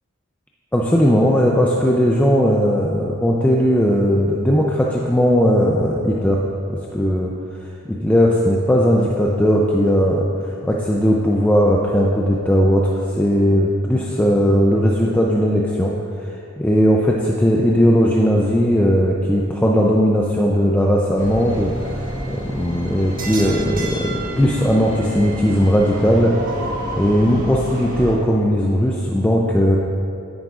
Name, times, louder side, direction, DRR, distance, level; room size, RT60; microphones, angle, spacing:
voice 1, 0.7-6.4 6.7-7.3 7.9-10.3 10.6-15.9 16.6-26.3 27.0-29.8, equal, 5° left, -2 dB, 0.4 m, -17 dB
sound 1, 21.2-28.1, right 1 dB, 40° right, 1.3 m, -29 dB
9.7 x 8.9 x 2.4 m, 2.6 s
head